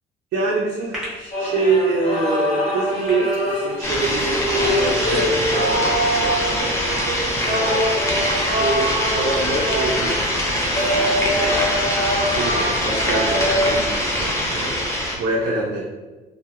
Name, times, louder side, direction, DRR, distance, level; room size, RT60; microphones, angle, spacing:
voice 1, 0.3-6.8 7.4-7.8 8.2-10.2 10.5-11.7 12.2-15.8, right 3 dB, 75° right, -3 dB, 0.4 m, -26 dB
sound 1, 0.8-1.3 1.9-2.2 2.7-3.7 4.2-6.1 6.4-6.6 7.0-8.1 8.5-8.6, equal, 5° right, 0.9 m, -36 dB
sound 2, 1.3-13.8, equal, 45° left, 0.9 m, -24 dB
sound 3, 3.8-15.2, left 1 dB, 15° left, 0.5 m, -23 dB
2.7 x 2.1 x 2.2 m, 1.2 s
cardioid pair, 110°, 17 cm